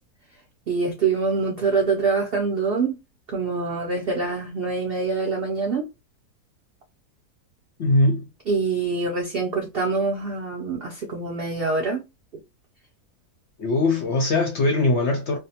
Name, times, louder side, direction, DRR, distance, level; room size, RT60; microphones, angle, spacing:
voice 1, 0.7-2.9 3.3-5.9 8.5-12.0, right 4 dB, 75° right, 0.5 m, -25 dB
voice 2, 7.8-8.3 13.6-15.4, left 2 dB, 65° left, 0.7 m, -21 dB
2.6 x 2.1 x 2.7 m
omnidirectional pair, 1.7 m